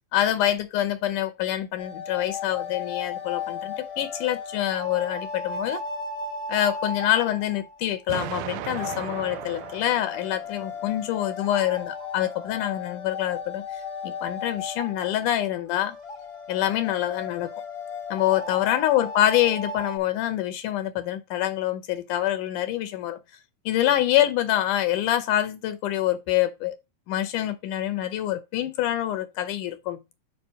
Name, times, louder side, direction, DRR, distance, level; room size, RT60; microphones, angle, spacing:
voice 1, 0.1-5.8 6.5-13.6 14.0-16.0 16.5-17.5 18.1-23.2 23.7-26.8 27.1-30.0, left 12 dB, 75° left, 2.1 m, -26 dB
sound 1, 1.8-20.0, left 4 dB, 35° left, 1.0 m, -36 dB
Explosion, 8.1-11.1, right 14 dB, 80° right, 1.9 m, -37 dB
5.6 x 4.9 x 5.4 m
omnidirectional pair, 3.9 m